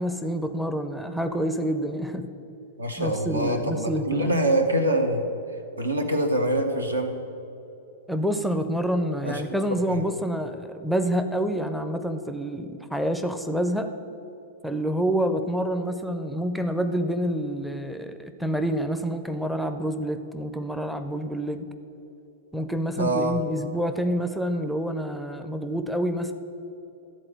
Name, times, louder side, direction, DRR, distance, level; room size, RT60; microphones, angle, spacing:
voice 1, 0.0-2.3 3.0-4.4 8.1-13.9 14.6-21.7 22.5-26.3, equal, ahead, 8 dB, 0.5 m, -27 dB
voice 2, 2.8-5.2 5.8-7.1 9.2-9.4 9.9-10.0 23.0-23.4, right 1 dB, 80° right, 5 dB, 1.0 m, -24 dB
12.5 x 4.3 x 7.5 m, 2.8 s
figure-of-eight pair, 100°, 0 cm